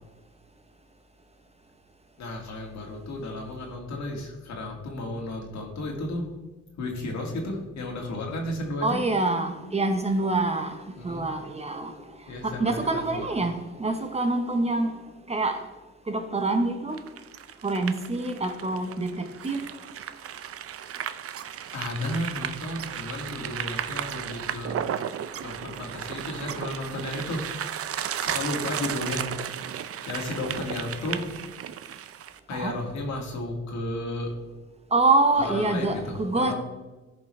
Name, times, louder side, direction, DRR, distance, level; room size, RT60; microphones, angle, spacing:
voice 1, 2.2-6.3 6.8-9.0 11.0-11.2 12.3-13.3 21.7-24.8 25.2-27.4 27.7-29.5 30.1-31.3 32.5-34.3 35.4-36.5, left 1 dB, 65° left, 2.3 m, -33 dB
voice 2, 8.8-10.8 11.0-11.9 12.4-14.9 15.3-15.6 16.1-17.0 17.6-19.6 32.5-32.7 34.9-36.5, right 2 dB, 20° right, 0.9 m, -25 dB
sound 1, 16.9-32.4, right 9 dB, 50° right, 0.6 m, -34 dB
14.0 x 5.3 x 3.3 m
cardioid pair, 90°, 30 cm